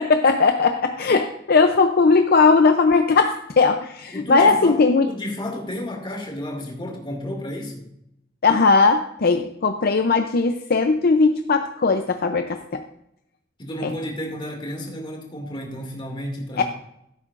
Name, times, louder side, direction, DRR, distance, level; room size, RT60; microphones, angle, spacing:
voice 1, 0.0-5.1 8.4-12.8 13.8-13.9 16.6-16.7, left 4 dB, 55° left, 7 dB, 0.6 m, -18 dB
voice 2, 4.1-4.8 5.1-7.9 13.6-16.6, left 1 dB, 25° left, 1 dB, 2.3 m, -31 dB
15.5 x 8.5 x 2.5 m, 0.80 s
head